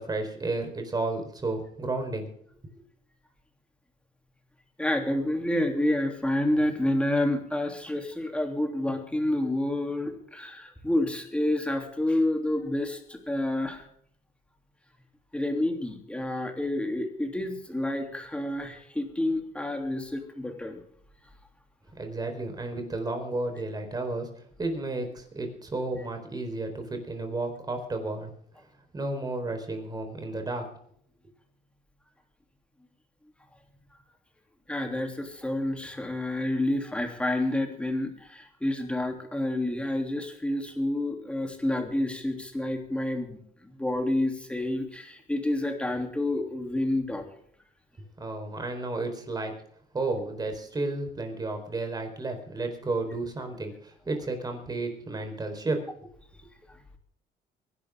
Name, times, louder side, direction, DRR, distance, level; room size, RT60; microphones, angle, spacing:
voice 1, 0.0-2.3 22.0-24.3 24.6-28.3 28.9-30.6 48.2-49.5 49.9-55.8, right 2 dB, 25° right, 5 dB, 4.3 m, -32 dB
voice 2, 4.8-13.9 15.3-20.8 34.7-47.3 56.7-56.8, left 1 dB, 5° left, 4 dB, 3.0 m, -29 dB
24.5 x 11.0 x 3.7 m, 0.65 s
cardioid pair, 110°, 17 cm